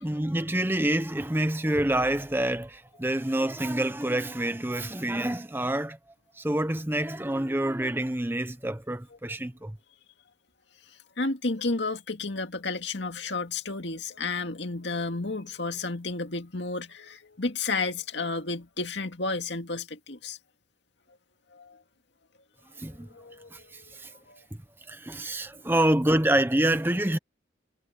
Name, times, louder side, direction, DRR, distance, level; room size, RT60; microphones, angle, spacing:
voice 1, 0.0-6.0 6.4-9.8 22.8-23.1 23.5-24.1 24.9-27.2, right 1 dB, 10° right, 0.7 m, -27 dB
voice 2, 11.2-20.4 21.5-21.8 23.1-24.4, left 3 dB, 70° left, 2.2 m, -32 dB
head